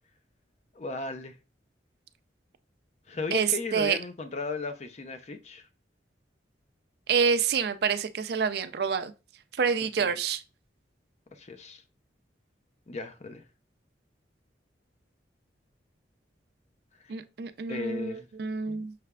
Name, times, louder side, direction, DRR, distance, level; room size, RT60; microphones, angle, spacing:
voice 1, 0.7-1.4 3.1-5.7 10.0-10.1 11.3-11.8 12.9-13.4 17.7-18.3 18.7-18.8, left 3 dB, 35° left, 0.5 m, -36 dB
voice 2, 3.3-4.0 7.1-9.1 9.6-10.4 17.1-18.9, right 6 dB, 60° right, 0.4 m, -27 dB
5.7 x 3.3 x 2.3 m
head